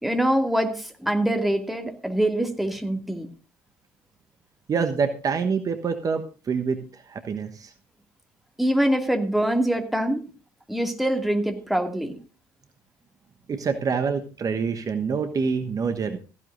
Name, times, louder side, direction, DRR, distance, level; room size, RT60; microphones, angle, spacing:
voice 1, 0.0-3.3 8.6-10.3 10.7-12.2, right 1 dB, ahead, 4 dB, 2.4 m, -24 dB
voice 2, 4.7-7.7 13.5-16.2, right 5 dB, 35° right, 7 dB, 1.2 m, -26 dB
16.5 x 15.0 x 2.6 m, 0.35 s
figure-of-eight pair, 55°, 10 cm